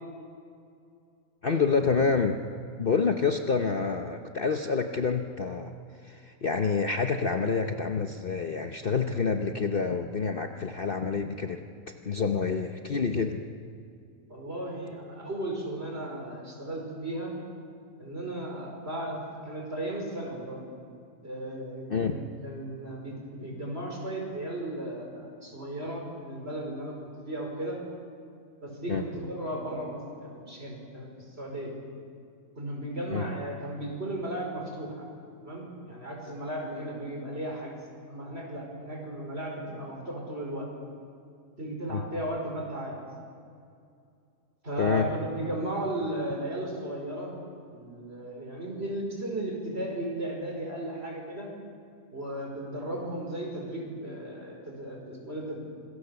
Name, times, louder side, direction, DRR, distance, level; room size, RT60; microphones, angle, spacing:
voice 1, 1.4-2.4 2.8-5.7 6.0-11.7 12.0-13.4 21.9-22.2 28.9-29.0 33.1-33.2 41.9-42.0 44.8-45.1, left 5 dB, 45° left, 5 dB, 1.0 m, -27 dB
voice 2, 14.3-17.3 18.0-19.2 19.4-20.6 21.2-27.8 28.6-31.7 32.6-35.1 35.4-37.7 38.1-40.7 41.6-43.0 44.6-47.3 47.7-51.5 52.1-55.6, right 1 dB, 45° right, 0 dB, 5.3 m, -35 dB
26.5 x 21.5 x 7.0 m, 2.4 s
omnidirectional pair, 1.6 m